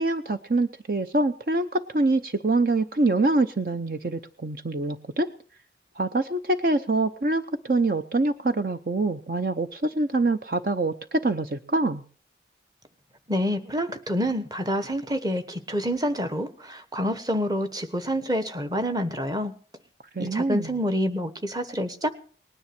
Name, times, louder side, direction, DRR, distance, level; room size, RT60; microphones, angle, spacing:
voice 1, 0.0-5.3 6.0-12.0 20.1-20.7, right 2 dB, 50° right, 9 dB, 0.7 m, -25 dB
voice 2, 13.3-19.6 20.2-22.1, equal, 20° right, 10 dB, 1.2 m, -27 dB
19.5 x 10.0 x 6.0 m, 0.43 s
head